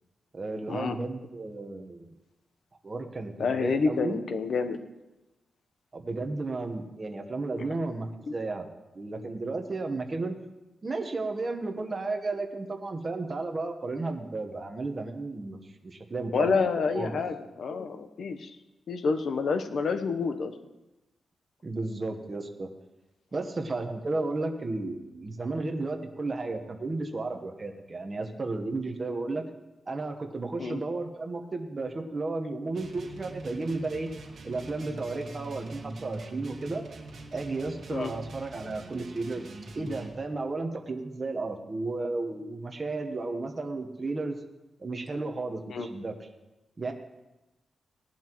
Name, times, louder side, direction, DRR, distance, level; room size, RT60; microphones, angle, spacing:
voice 1, 0.3-2.1 2.8-4.2 5.9-8.7 8.9-10.4 10.8-16.6 16.9-17.2 21.6-22.7 23.3-29.5 29.9-34.1 34.4-36.8 37.3-39.4 39.7-44.4 44.8-46.1 46.8-46.9, right 3 dB, 30° right, 4 dB, 1.1 m, -33 dB
voice 2, 3.4-4.8 8.3-8.4 16.3-18.5 18.9-20.5 30.6-30.8 37.9-38.1 45.7-45.9, left 5 dB, 65° left, 8 dB, 0.9 m, -28 dB
sound 1, 32.7-40.2, right 2 dB, 60° right, 1.8 m, -43 dB
18.0 x 11.5 x 3.1 m, 1.0 s
wide cardioid pair, 130°, 0 cm